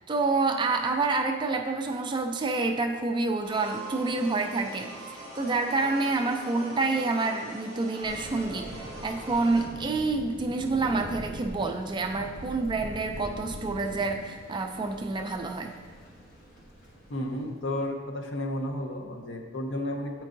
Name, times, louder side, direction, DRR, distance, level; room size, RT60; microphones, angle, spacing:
voice 1, 0.1-15.7, right 3 dB, 25° right, 4 dB, 0.3 m, -28 dB
sound 1, 3.4-9.7, right 2 dB, 5° left, 1.4 m, -42 dB
Thunder, 8.0-17.7, equal, 40° left, 1.1 m, -43 dB
voice 2, 17.1-20.1, left 1 dB, 65° left, 3 dB, 0.7 m, -32 dB
8.4 x 4.5 x 2.6 m, 1.5 s
head